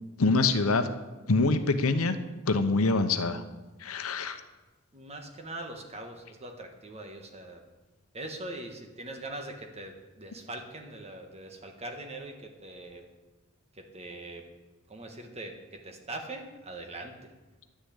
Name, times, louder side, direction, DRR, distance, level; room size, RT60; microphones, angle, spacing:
voice 1, 0.2-0.9 1.3-2.2 2.5-3.4 3.8-4.4, left 3 dB, 80° left, 9 dB, 0.8 m, -25 dB
voice 2, 4.9-7.6 8.1-13.1 13.7-14.4 14.9-17.3, right 2 dB, 30° right, 3 dB, 1.5 m, -42 dB
11.0 x 6.5 x 8.3 m, 1.2 s
head